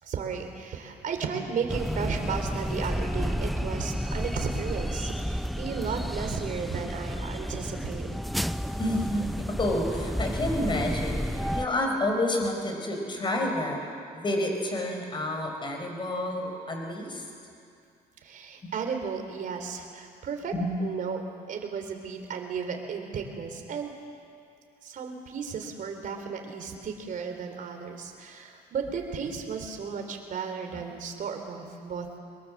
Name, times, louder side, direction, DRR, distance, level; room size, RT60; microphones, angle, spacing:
voice 1, 0.0-8.2 18.2-20.5 20.8-21.2 21.5-23.9 24.8-32.2, right 6 dB, 50° right, 4 dB, 3.5 m, -34 dB
sound 1, 1.7-11.7, equal, ahead, 0.6 m, -31 dB
voice 2, 8.8-13.8 14.1-17.2 18.6-18.7 20.5-20.8 30.7-30.8, left 1 dB, 30° left, 2 dB, 5.0 m, -29 dB
23.0 x 22.5 x 7.3 m, 2.4 s
cardioid pair, 110°, 17 cm